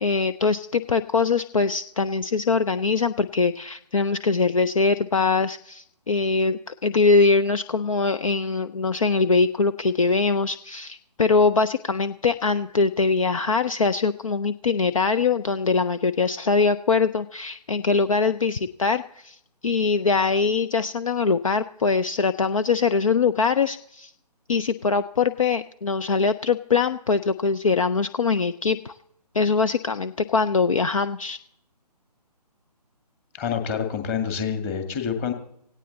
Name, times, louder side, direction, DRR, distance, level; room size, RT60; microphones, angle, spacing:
voice 1, 0.0-19.4 19.6-24.1 24.5-29.0 29.3-31.4, left 4 dB, 55° left, 11 dB, 0.6 m, -22 dB
voice 2, 33.4-35.3, left 7 dB, 20° left, 5 dB, 2.1 m, -27 dB
17.5 x 17.0 x 4.1 m, 0.72 s
figure-of-eight pair, 140°, 21 cm